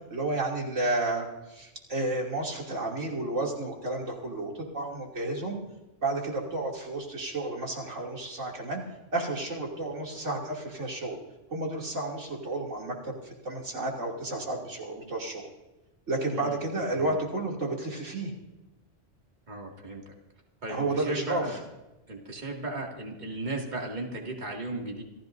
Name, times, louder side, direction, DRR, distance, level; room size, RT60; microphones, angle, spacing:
voice 1, 0.1-5.6 6.0-8.8 9.1-11.2 11.5-15.5 16.1-18.3 20.7-21.4, right 2 dB, 90° right, -1 dB, 3.2 m, -31 dB
voice 2, 16.3-16.6 16.9-17.2 19.5-20.1 20.6-21.6 22.1-25.0, right 2 dB, 40° right, -1 dB, 2.4 m, -36 dB
27.5 x 15.5 x 2.6 m, 1.0 s
omnidirectional pair, 1.2 m